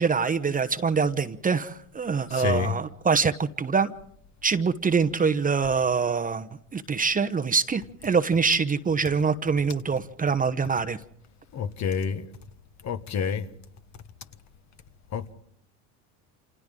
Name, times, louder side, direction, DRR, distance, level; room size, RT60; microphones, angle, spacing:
voice 1, 0.0-3.9 4.4-6.5 6.7-11.0, right 5 dB, 20° right, 1.0 m, -24 dB
voice 2, 2.3-2.8 11.5-12.3 12.8-13.5 15.1-15.3, left 6 dB, 45° left, 1.6 m, -28 dB
29.0 x 27.0 x 3.8 m
supercardioid pair, 100°, 39 cm